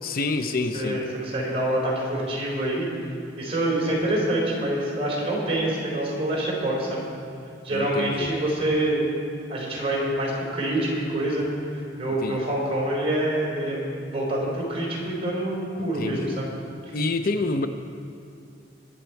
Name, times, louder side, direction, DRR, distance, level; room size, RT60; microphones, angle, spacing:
voice 1, 0.0-1.0 7.7-8.3 12.2-12.4 15.8-16.4 16.9-17.7, left 3 dB, 55° left, 8 dB, 0.6 m, -27 dB
voice 2, 0.7-2.9 3.4-7.0 7.6-9.1 9.5-16.5 16.9-17.0, right 1 dB, 35° right, -4 dB, 3.9 m, -26 dB
23.0 x 8.1 x 4.5 m, 2.4 s
head